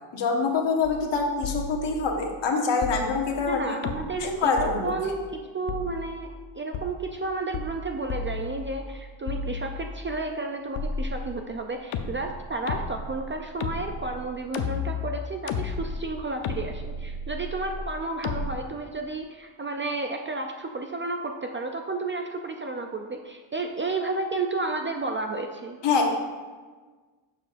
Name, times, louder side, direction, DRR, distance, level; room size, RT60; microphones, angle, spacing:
voice 1, 0.1-3.8 4.2-4.9 25.8-26.1, left 4 dB, 60° left, 1 dB, 1.3 m, -25 dB
sound 1, 0.8-1.1 1.4-2.2 2.8-3.5 3.8-4.3 4.6-5.2 5.7-6.3 6.7-6.9 7.5-7.8 8.1-8.9 9.3-10.1 10.8-11.5 11.9-18.5, left 4 dB, 75° left, 0.7 m, -33 dB
voice 2, 3.5-6.3 6.5-25.8, right 3 dB, 25° right, 3 dB, 0.4 m, -32 dB
11.0 x 6.9 x 2.5 m, 1.4 s
cardioid pair, 125°, 49 cm